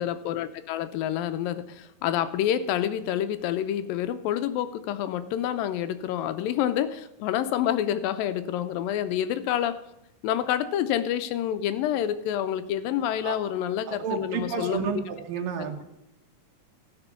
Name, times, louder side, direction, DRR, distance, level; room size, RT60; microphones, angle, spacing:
voice 1, 0.0-9.8 10.2-14.9, left 10 dB, 90° left, 12 dB, 2.5 m, -28 dB
voice 2, 13.9-15.8, right 7 dB, 80° right, 5 dB, 3.0 m, -31 dB
15.0 x 6.0 x 6.9 m, 0.84 s
omnidirectional pair, 3.9 m